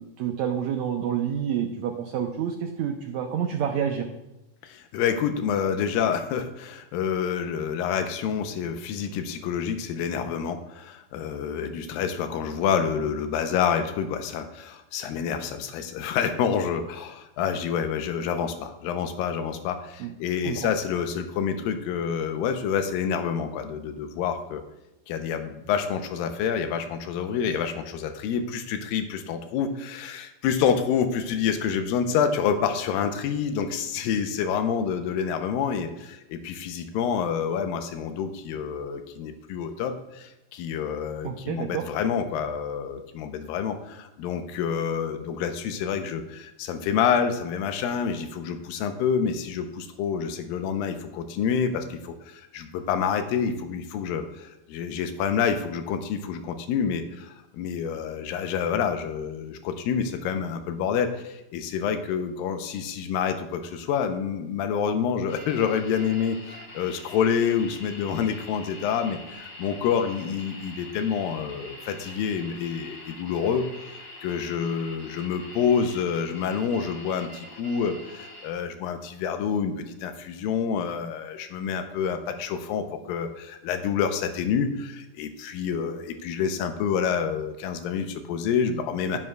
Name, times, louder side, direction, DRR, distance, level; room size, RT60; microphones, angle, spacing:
voice 1, 0.0-4.1 20.0-20.1 20.4-20.7 41.2-41.8 89.1-89.2, right 8 dB, 80° right, 4 dB, 1.6 m, -28 dB
voice 2, 4.6-24.6 25.1-89.2, left 7 dB, 90° left, 7 dB, 2.4 m, -28 dB
sound 1, 65.3-78.5, left 1 dB, 55° left, 1.3 m, -44 dB
12.5 x 11.0 x 2.3 m, 0.92 s
omnidirectional pair, 4.0 m